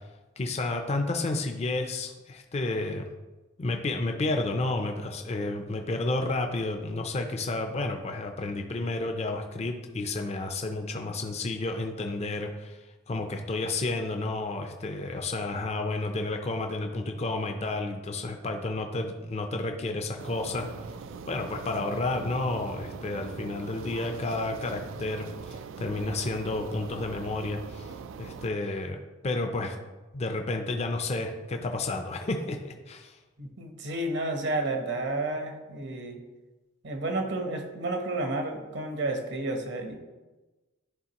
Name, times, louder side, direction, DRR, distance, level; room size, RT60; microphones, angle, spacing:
voice 1, 0.4-3.0 3.6-12.8 13.1-20.7 21.3-27.9 28.2-29.8 30.1-33.2, left 2 dB, 35° left, 4 dB, 0.5 m, -31 dB
sound 1, 20.2-28.5, right 5 dB, 85° right, 0.3 m, -41 dB
voice 2, 33.4-36.2 36.8-40.0, right 2 dB, 65° right, 4 dB, 1.0 m, -31 dB
11.0 x 3.7 x 2.9 m, 1.2 s
head